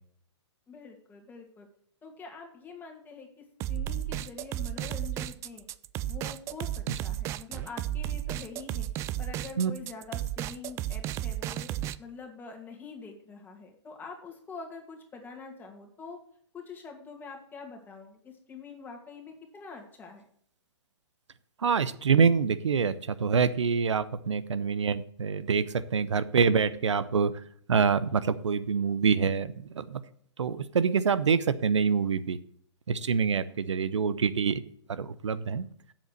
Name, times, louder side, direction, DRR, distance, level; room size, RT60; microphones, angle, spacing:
voice 1, 0.7-1.7 2.0-5.7 6.1-8.9 9.2-11.7 12.0-16.2 16.5-20.2, left 4 dB, 15° left, 1 dB, 2.3 m, -45 dB
sound 1, 3.6-12.0, right 13 dB, 20° right, 0.3 m, -33 dB
voice 2, 21.6-27.3 27.7-30.0 30.4-32.4 32.9-34.6 34.9-35.6, right 6 dB, 85° right, 14 dB, 0.8 m, -26 dB
8.0 x 7.2 x 6.5 m, 0.62 s
hypercardioid pair, 140°, 15 cm